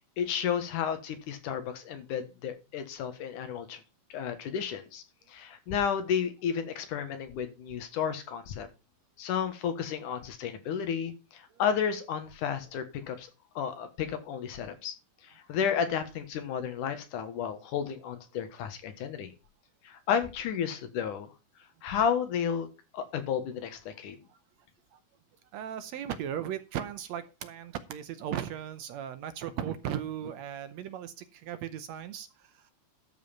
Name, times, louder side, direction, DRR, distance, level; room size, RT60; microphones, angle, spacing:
voice 1, 0.2-3.8 4.1-5.0 5.3-8.7 9.2-13.3 13.6-14.9 15.5-19.3 19.8-21.3 21.8-22.7 22.9-24.2, left 7 dB, 80° left, 8 dB, 2.9 m, -32 dB
voice 2, 25.5-32.7, right 10 dB, 75° right, 12 dB, 1.8 m, -37 dB
12.0 x 5.4 x 5.8 m, 0.30 s
omnidirectional pair, 3.6 m